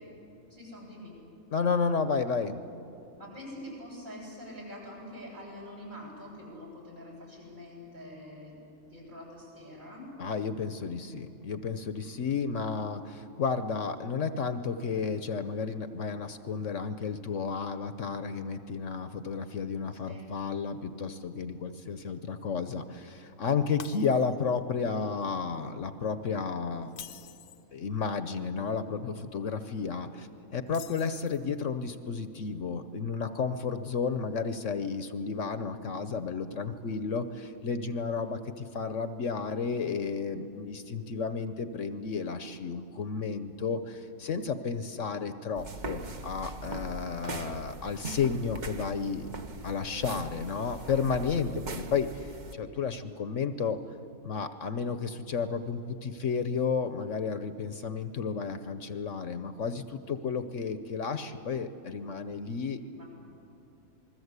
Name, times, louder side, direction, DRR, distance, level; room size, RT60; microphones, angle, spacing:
voice 1, 0.5-1.1 3.1-8.6 8.8-10.1 12.0-12.1 20.1-20.3 62.8-63.0, left 1 dB, 65° right, -4 dB, 8.6 m, -45 dB
voice 2, 1.5-2.6 10.2-26.9 27.7-49.3 49.6-53.8 54.2-62.8, left 5 dB, 60° left, 10 dB, 1.1 m, -32 dB
Shatter, 23.8-24.6 25.0-25.2 26.8-27.7 30.7-31.6, left 9 dB, 90° left, 1.4 m, -47 dB
sound 1, 45.6-52.5, right 2 dB, 35° right, 1.0 m, -41 dB
27.5 x 21.0 x 8.2 m, 2.8 s
omnidirectional pair, 1.6 m